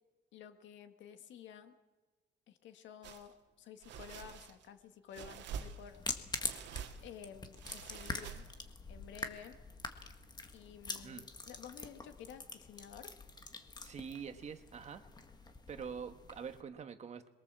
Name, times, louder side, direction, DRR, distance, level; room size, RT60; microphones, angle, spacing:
voice 1, 0.3-1.7 2.5-6.0 7.0-8.4 8.9-9.6 10.5-13.1, left 8 dB, 85° left, 8 dB, 2.0 m, -52 dB
sound 1, 3.0-3.3 3.8-4.7 5.1-6.0 6.4-7.1 7.6-8.7, right 7 dB, 80° right, 2.2 m, -47 dB
sound 2, 5.9-16.6, left 3 dB, 20° left, 1.7 m, -45 dB
voice 2, 13.8-15.0 15.7-17.3, right 6 dB, 40° right, 8 dB, 1.6 m, -45 dB
27.0 x 22.5 x 7.6 m, 1.2 s
cardioid pair, 155°, 19 cm